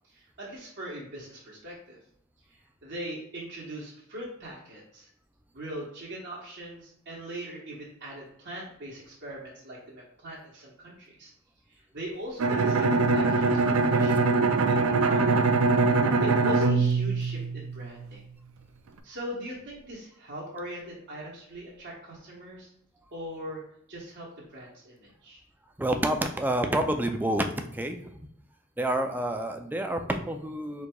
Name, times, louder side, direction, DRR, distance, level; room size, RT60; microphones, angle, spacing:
voice 1, 0.1-2.0 2.5-5.1 5.5-11.3 11.7-14.3 14.7-15.5 15.9-18.2 19.0-22.7 23.1-23.6 23.9-25.4, right 1 dB, 55° right, -5 dB, 1.0 m, -41 dB
Bowed string instrument, 12.4-18.1, right 3 dB, 75° right, 0.4 m, -23 dB
voice 2, 25.8-27.4 27.7-28.1 28.8-30.9, right 1 dB, 10° right, 5 dB, 0.3 m, -28 dB
4.6 x 3.9 x 2.2 m, 0.72 s
head